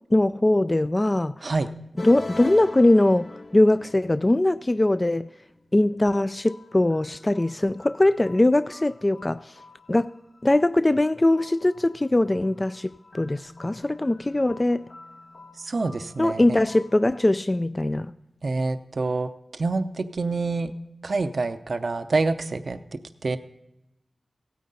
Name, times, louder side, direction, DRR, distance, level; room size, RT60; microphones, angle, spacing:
voice 1, 0.1-1.5 2.0-5.3 5.7-9.6 9.9-10.1 10.4-14.8 16.2-18.1, left 1 dB, 30° left, 0.3 m, -21 dB
sound 1, 2.0-17.4, left 2 dB, 60° left, 0.9 m, -45 dB
voice 2, 15.5-16.6 18.4-20.7 21.0-23.4, right 3 dB, 65° right, 0.6 m, -27 dB
16.0 x 9.3 x 3.9 m
cardioid pair, 40°, 0 cm